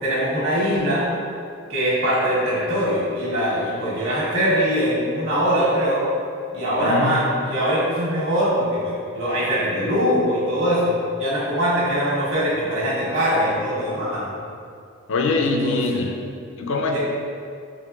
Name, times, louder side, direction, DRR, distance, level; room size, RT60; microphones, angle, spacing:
voice 1, 0.0-1.1 1.7-6.1 6.5-14.3 15.4-16.0 16.9-17.0, equal, 60° right, -7 dB, 1.3 m, -22 dB
voice 2, 6.8-7.2 15.1-16.1 16.6-17.0, left 3 dB, 60° left, 3 dB, 0.4 m, -23 dB
4.6 x 3.2 x 2.4 m, 2.4 s
head